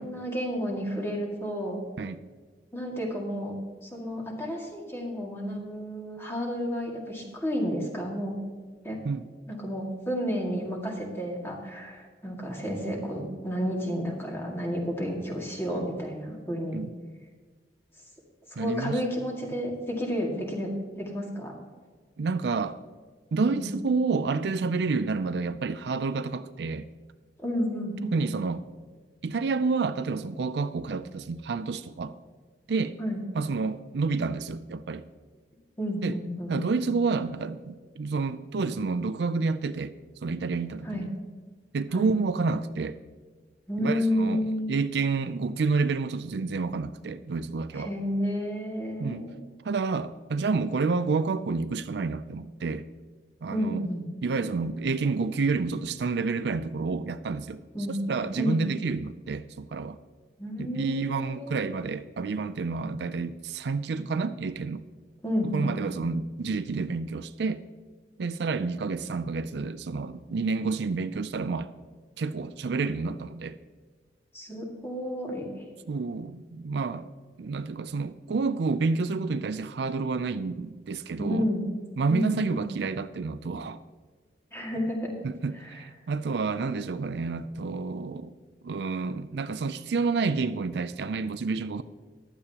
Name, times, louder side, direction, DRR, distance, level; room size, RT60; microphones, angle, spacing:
voice 1, 0.0-1.8 2.7-3.5 3.8-8.4 8.8-9.0 9.5-16.8 18.5-21.5 23.5-23.7 27.4-28.1 33.0-33.2 35.8-36.6 40.8-41.1 41.9-42.1 43.7-44.7 47.7-49.4 53.5-54.1 57.7-58.0 58.4-58.6 60.4-61.6 65.2-65.8 74.3-75.5 81.2-81.7 82.1-82.6 84.5-85.3 85.6-85.8, equal, 15° left, -1 dB, 2.0 m, -31 dB
voice 2, 18.6-19.0 22.2-22.8 23.3-26.9 28.0-28.7 29.2-32.2 32.7-33.0 33.3-35.0 36.0-36.2 36.5-39.9 40.2-41.1 41.7-43.0 43.8-44.4 44.7-47.9 49.0-49.3 49.6-52.9 53.4-53.8 54.2-57.6 58.1-60.0 60.6-64.9 65.4-67.6 68.2-71.7 72.2-73.6 75.9-77.1 77.4-81.5 82.0-83.8 85.2-88.3 88.6-91.8, right 4 dB, 70° right, 12 dB, 0.4 m, -29 dB
15.0 x 11.5 x 2.9 m, 1.4 s
head